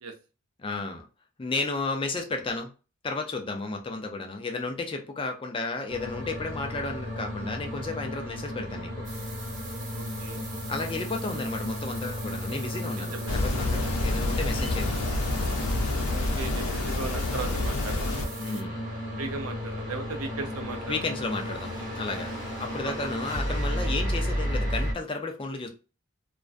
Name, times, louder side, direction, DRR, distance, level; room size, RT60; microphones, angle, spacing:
voice 1, 0.6-1.0 1.4-2.7 3.0-9.1 10.7-15.1 18.4-18.8 20.9-22.3 22.6-25.7, left 3 dB, 25° left, 5 dB, 0.3 m, -33 dB
sound 1, 5.9-24.9, equal, 20° right, 1.0 m, -34 dB
sound 2, 9.0-18.6, right 4 dB, 35° right, 0.7 m, -44 dB
voice 2, 9.9-10.4 13.0-13.4 16.1-18.1 19.2-21.0 22.8-23.1, right 3 dB, 80° right, 5 dB, 0.6 m, -37 dB
sound 3, 13.3-18.3, left 2 dB, 85° left, 0.5 m, -28 dB
2.4 x 2.1 x 2.4 m, 0.33 s
head